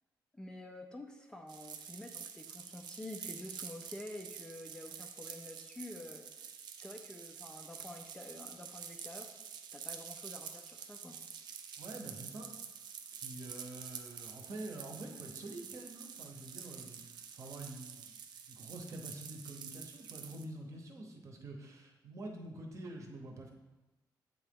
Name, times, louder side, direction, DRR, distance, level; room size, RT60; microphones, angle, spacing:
voice 1, 0.3-9.3 9.7-11.2, left 1 dB, 10° left, 3 dB, 0.3 m, -49 dB
sound 1, 1.5-20.4, right 7 dB, 75° right, 0.5 m, -48 dB
voice 2, 11.8-12.6 13.1-18.2 18.5-23.5, right 2 dB, 45° right, 3 dB, 0.8 m, -47 dB
8.0 x 3.8 x 3.6 m, 1.1 s
wide cardioid pair, 175°, 7 cm